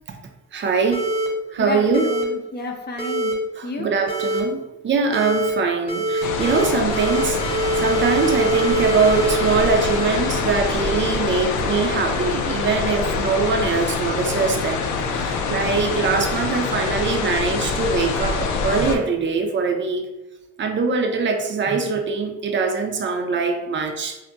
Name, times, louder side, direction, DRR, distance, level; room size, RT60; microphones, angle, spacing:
voice 1, 0.5-1.1 1.5-2.1 3.6-7.4 7.8-20.1 20.6-24.2, right 4 dB, 40° right, 4 dB, 0.5 m, -22 dB
sound 1, 0.9-1.3 1.9-2.2 3.0-3.3 4.1-4.4 5.1-5.5 5.9-6.7 6.9-10.7, right 2 dB, 20° left, 1.1 m, -24 dB
voice 2, 1.6-3.9, left 2 dB, 35° left, 2 dB, 0.6 m, -31 dB
sound 2, 6.2-19.0, left 4 dB, 75° left, 0.5 m, -25 dB
2.3 x 2.1 x 3.8 m, 1.0 s
cardioid pair, 90°, 30 cm